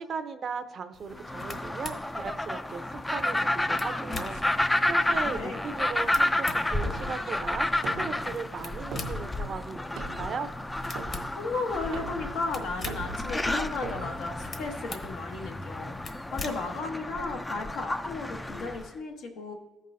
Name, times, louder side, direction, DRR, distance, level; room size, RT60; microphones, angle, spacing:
voice 1, 0.0-2.8 3.1-10.5, right 5 dB, 55° right, 10 dB, 0.6 m, -37 dB
sound 1, 0.9-16.8, left 4 dB, 45° left, 1.1 m, -45 dB
sound 2, 1.2-18.9, left 1 dB, 15° left, 0.3 m, -31 dB
sound 3, 4.3-15.0, right 3 dB, 85° right, 0.8 m, -44 dB
voice 2, 5.3-5.6 11.3-16.0 16.3-19.5, left 3 dB, 90° left, 2 dB, 1.1 m, -34 dB
15.0 x 5.4 x 2.6 m, 1.1 s
cardioid pair, 90°, 0 cm